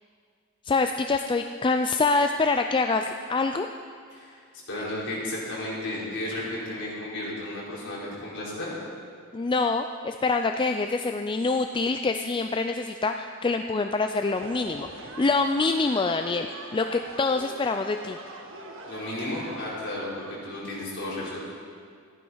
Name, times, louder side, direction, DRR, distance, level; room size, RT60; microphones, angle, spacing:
voice 1, 0.6-3.7 9.3-16.5 16.7-18.2, left 3 dB, 20° left, 6 dB, 0.4 m, -25 dB
voice 2, 4.7-8.8 18.9-21.4, left 1 dB, 55° left, -6 dB, 4.6 m, -33 dB
sound 1, 14.2-19.8, right 2 dB, 60° right, 1.4 m, -42 dB
14.5 x 11.5 x 5.6 m, 2.1 s
head